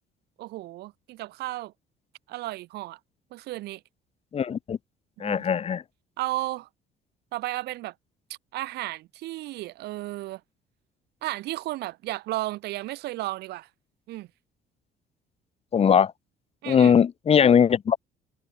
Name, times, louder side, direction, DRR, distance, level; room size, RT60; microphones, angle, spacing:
voice 1, 0.4-1.7 2.3-3.0 3.3-3.8 5.2-5.5 6.2-6.7 7.3-7.9 8.5-10.4 11.2-13.7 14.1-14.3 16.6-17.0, right 17 dB, 75° right, 0.8 m, -33 dB
voice 2, 4.3-4.8 5.2-5.8 15.7-16.1 16.6-18.0, left 7 dB, 35° left, 0.9 m, -20 dB
cardioid pair, 110°, 17 cm